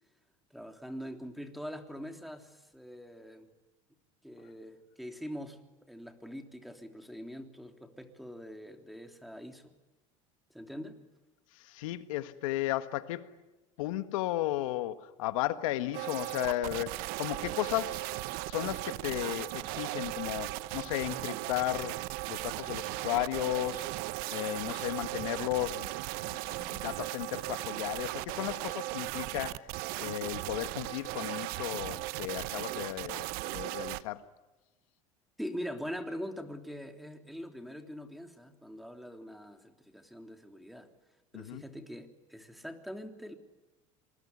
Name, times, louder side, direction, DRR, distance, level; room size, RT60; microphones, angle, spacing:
voice 1, 0.5-3.5 4.2-5.6 5.9-9.7 10.5-11.0 35.4-40.9 41.3-43.3, equal, ahead, 3.3 m, -43 dB
voice 2, 11.6-13.3 13.8-18.1 18.5-22.0 22.3-23.9 24.3-25.9 26.2-29.7 30.0-34.2 41.3-41.6, left 15 dB, 80° left, 1.7 m, -34 dB
sound 1, 15.9-34.0, right 19 dB, 65° right, 0.9 m, -37 dB
27.0 x 21.0 x 9.8 m
hypercardioid pair, 90°, 17 cm